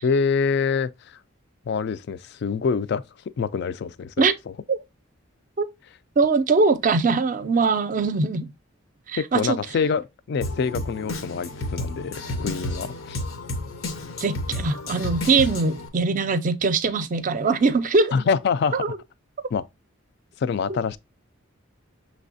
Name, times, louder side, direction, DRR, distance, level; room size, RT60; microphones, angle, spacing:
voice 1, 0.0-1.2 1.7-3.0 3.4-4.3 9.2-13.2 18.1-18.9 19.5-19.6 20.4-21.0, left 5 dB, 55° left, 0.3 m, -25 dB
voice 2, 6.2-8.5 9.1-9.6 14.2-18.1 18.8-19.0, right 4 dB, 40° right, 0.4 m, -22 dB
Drum kit, 10.4-15.9, left 1 dB, 90° left, 0.8 m, -31 dB
6.1 x 3.2 x 2.5 m
head